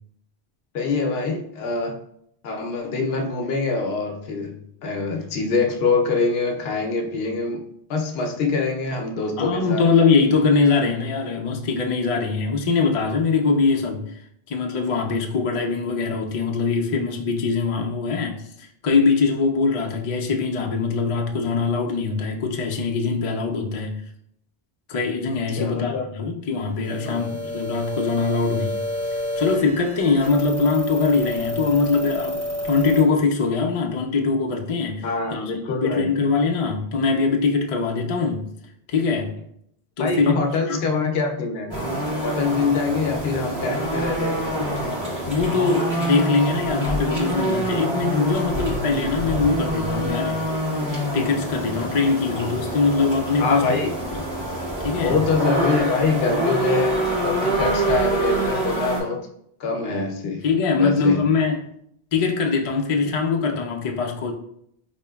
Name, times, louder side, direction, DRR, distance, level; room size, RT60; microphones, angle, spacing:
voice 1, 0.7-1.9 2.4-7.6 7.9-9.9 25.6-26.0 27.0-27.4 35.0-36.1 40.0-41.8 42.2-44.7 52.2-52.5 53.4-54.0 55.0-59.2 59.6-60.4 60.8-61.2, left 4 dB, 70° left, 0.8 m, -24 dB
voice 2, 9.4-14.0 14.5-24.0 24.9-28.8 29.4-35.5 35.8-38.5 38.9-39.3 40.0-40.3 40.7-40.9 45.2-50.4 51.1-53.7 54.8-55.2 60.4-61.7 62.1-64.3, left 4 dB, 50° left, 0.4 m, -22 dB
sound 1, 26.8-33.0, left 1 dB, 60° right, 1.4 m, -29 dB
sound 2, 41.7-59.0, right 1 dB, 25° right, 1.1 m, -26 dB
4.3 x 2.9 x 2.2 m
omnidirectional pair, 1.1 m